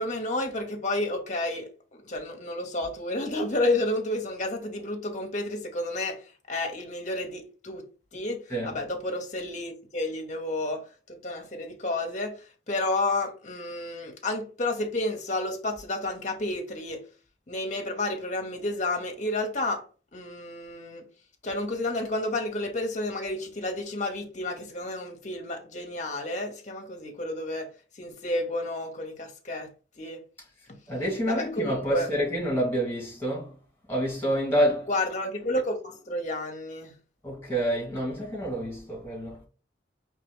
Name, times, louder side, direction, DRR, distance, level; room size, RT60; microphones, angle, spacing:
voice 1, 0.0-1.7 2.0-6.2 6.5-7.9 8.1-12.4 12.7-17.0 17.5-19.8 20.1-21.1 21.4-27.7 28.0-29.7 30.0-30.2 31.3-32.1 34.9-36.9, left 2 dB, 40° left, 1.0 m, -31 dB
voice 2, 30.9-33.5 33.9-34.9 37.2-39.4, equal, 10° left, 2.1 m, -28 dB
4.4 x 3.2 x 3.6 m
head